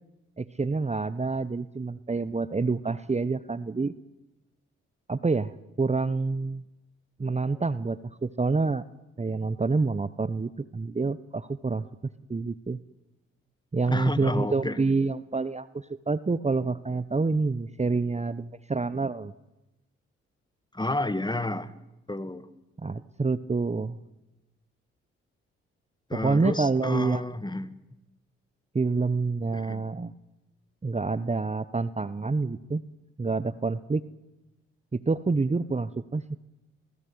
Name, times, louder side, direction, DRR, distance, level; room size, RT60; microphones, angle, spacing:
voice 1, 0.4-3.9 5.1-5.5 5.8-6.6 7.2-8.8 9.2-11.8 12.3-12.8 13.7-15.7 16.1-19.3 22.8-24.0 26.1-27.2 28.7-30.1 30.8-32.8 33.2-34.0 34.9-36.4, right 4 dB, 20° right, 16 dB, 1.1 m, -27 dB
voice 2, 13.9-14.8 20.7-21.7 22.1-22.5 26.1-27.8 29.5-29.8, left 2 dB, 15° left, 14 dB, 2.0 m, -31 dB
28.5 x 19.0 x 9.7 m, 1.0 s
hypercardioid pair, 50°, 30 cm